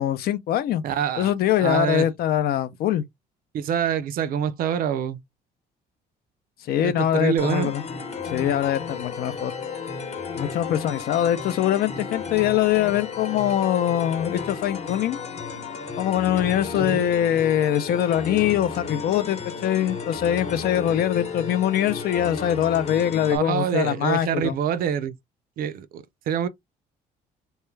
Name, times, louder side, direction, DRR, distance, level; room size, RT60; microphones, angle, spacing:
voice 1, 0.0-0.8 1.2-3.0 6.7-7.8 8.2-9.5 10.3-15.2 16.0-24.6, left 11 dB, 65° left, 0.5 m, -23 dB
voice 2, 0.8-1.3 1.6-2.1 3.5-5.2 6.8-7.7 16.8-17.1 23.3-25.2 25.6-26.5, right 9 dB, 60° right, 0.4 m, -26 dB
sound 1, 7.4-23.4, left 5 dB, 40° left, 0.9 m, -33 dB
2.3 x 2.1 x 3.1 m
cardioid pair, 110°, 17 cm